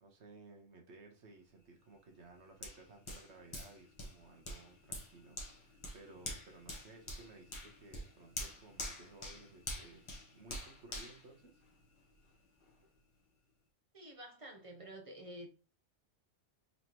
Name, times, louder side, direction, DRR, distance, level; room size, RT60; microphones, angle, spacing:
voice 1, 0.0-11.6, right 3 dB, 65° right, 1.3 m, -57 dB
Hands, 2.6-12.1 12.6-12.7, left 1 dB, 25° left, 1.0 m, -46 dB
voice 2, 13.9-15.5, right 1 dB, 35° right, 0.7 m, -49 dB
4.1 x 3.2 x 2.9 m
omnidirectional pair, 1.3 m